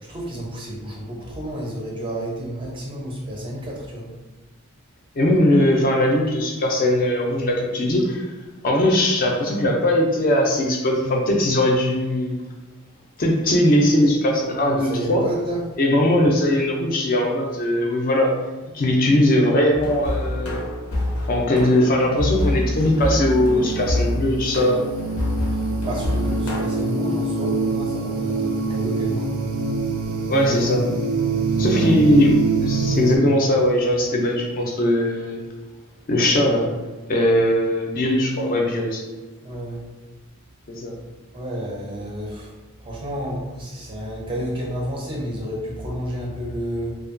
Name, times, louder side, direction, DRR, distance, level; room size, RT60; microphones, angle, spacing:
voice 1, 0.0-4.1 14.5-15.6 25.8-29.4 31.5-32.0 39.4-39.8 41.3-42.5 42.8-46.9, equal, 25° right, -2 dB, 0.4 m, -30 dB
voice 2, 5.2-8.3 8.6-12.4 13.2-15.2 15.8-18.3 18.7-20.6 21.3-24.8 30.3-30.9 31.6-32.3 32.6-35.4 36.1-36.7 37.1-39.0 40.7-40.9, left 1 dB, 40° left, 0 dB, 0.3 m, -20 dB
sound 1, 19.7-26.6, left 1 dB, 85° left, 0.6 m, -26 dB
sound 2, 22.1-33.2, right 3 dB, 85° right, 0.5 m, -25 dB
2.6 x 2.1 x 2.5 m, 1.2 s
head